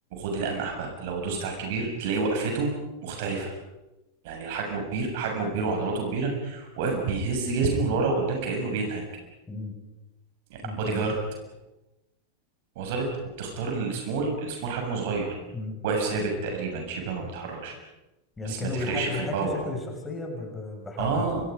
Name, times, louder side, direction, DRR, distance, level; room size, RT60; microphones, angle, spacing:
voice 1, 0.1-2.7 3.0-3.5 4.2-9.0 10.5-11.1 12.8-13.1 13.4-15.3 15.8-17.8 18.4-19.6 21.0-21.4, right 4 dB, 50° right, 2 dB, 7.1 m, -29 dB
voice 2, 10.6-11.0 15.5-15.8 18.4-21.3, left 3 dB, 15° left, 2 dB, 6.4 m, -34 dB
29.5 x 26.0 x 5.3 m, 0.99 s
figure-of-eight pair, 90°, 0 cm